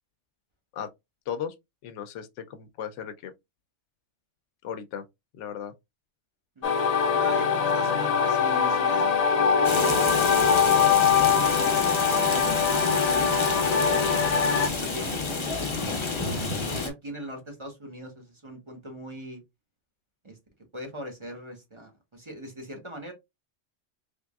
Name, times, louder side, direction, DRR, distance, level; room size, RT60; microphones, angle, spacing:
voice 1, 1.8-3.3 4.6-5.0 5.3-5.7, left 8 dB, 80° left, 0.9 m, -36 dB
sound 1, 6.6-14.7, left 6 dB, 65° left, 0.4 m, -22 dB
voice 2, 7.1-10.7 11.2-14.1 14.8-19.4 20.2-20.4 20.7-23.1, equal, 25° right, 1.1 m, -40 dB
Rain, 9.6-16.9, left 4 dB, 30° left, 0.6 m, -30 dB
3.6 x 3.3 x 2.3 m
omnidirectional pair, 1.2 m